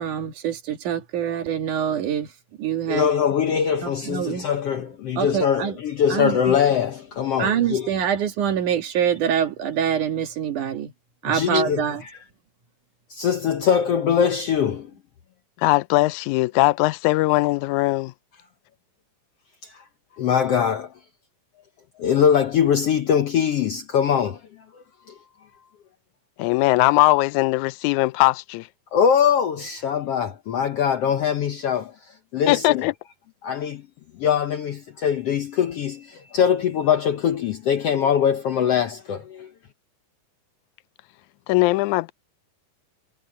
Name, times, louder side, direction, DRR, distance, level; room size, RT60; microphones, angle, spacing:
voice 1, 0.0-2.3 2.6-3.1 3.8-4.5 5.2-5.8 6.1-6.6 7.4-10.9 11.2-12.0, right 9 dB, 65° right, 3.3 m, -25 dB
voice 2, 2.9-7.9 11.3-11.8 13.1-14.9 19.6-19.8 20.2-20.9 22.0-24.4 25.1-25.2 28.9-31.9 32.3-32.7 33.4-33.8 34.2-39.5, left 8 dB, 70° left, 1.5 m, -22 dB
voice 3, 15.6-18.1 26.4-28.7 32.5-32.9 41.5-42.1, left 19 dB, 85° left, 1.7 m, -20 dB
omnidirectional pair, 3.9 m